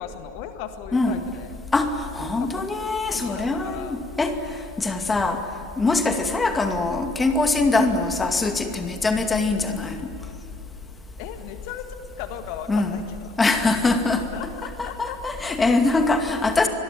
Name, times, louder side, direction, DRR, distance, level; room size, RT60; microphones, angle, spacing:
voice 1, 0.0-1.6 2.4-4.0 11.2-11.9 12.2-13.4 14.3-15.2, left 10 dB, 45° left, 8 dB, 1.8 m, -37 dB
voice 2, 2.1-4.3 4.8-5.4 5.8-10.1 12.7-13.0 13.4-14.2 14.6-16.7, left 3 dB, 10° left, 6 dB, 2.3 m, -23 dB
26.0 x 22.0 x 9.2 m, 2.3 s
figure-of-eight pair, 90°, 0 cm